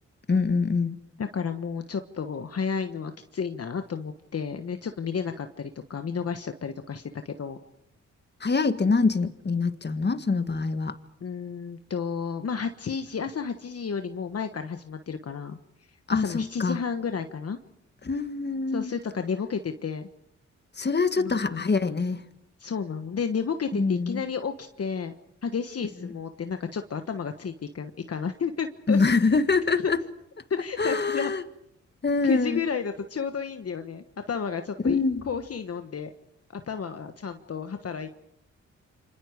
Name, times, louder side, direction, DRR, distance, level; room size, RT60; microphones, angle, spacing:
voice 1, 0.3-1.0 8.4-10.9 16.1-16.8 18.0-18.9 20.8-22.2 23.7-24.2 28.9-30.0 30.8-31.4 32.0-32.6 34.8-35.2, left 4 dB, 35° left, 1.7 m, -24 dB
voice 2, 1.2-7.6 11.2-15.6 16.1-17.6 18.7-20.1 21.2-21.6 22.6-25.1 25.4-29.0 29.8-29.9 30.5-31.3 32.2-35.0 35.3-36.1 36.5-38.1, left 6 dB, 55° left, 1.3 m, -32 dB
28.0 x 25.0 x 5.1 m
cardioid pair, 55°, 30 cm